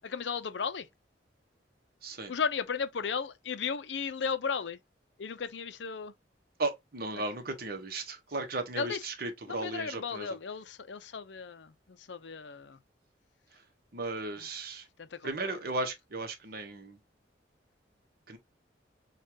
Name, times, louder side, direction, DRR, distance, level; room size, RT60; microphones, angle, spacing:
voice 1, 0.0-0.9 2.3-4.8 5.2-6.1 8.8-9.0 9.5-12.8 15.0-15.6, left 6 dB, 70° left, 0.6 m, -35 dB
voice 2, 2.0-2.3 6.6-10.4 13.9-14.9 15.2-17.0 18.3-18.4, right 2 dB, 55° right, 1.0 m, -36 dB
6.5 x 2.4 x 2.8 m
head